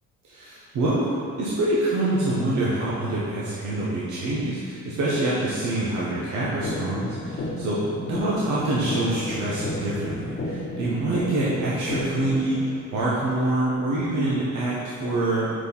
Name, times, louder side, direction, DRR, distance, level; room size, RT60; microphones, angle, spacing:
voice 1, 0.2-15.5, right 1 dB, 75° right, -7 dB, 1.2 m, -26 dB
sound 1, 6.6-12.6, left 1 dB, 40° left, 1.0 m, -32 dB
5.2 x 4.3 x 5.5 m, 2.3 s
cardioid pair, 90°, 30 cm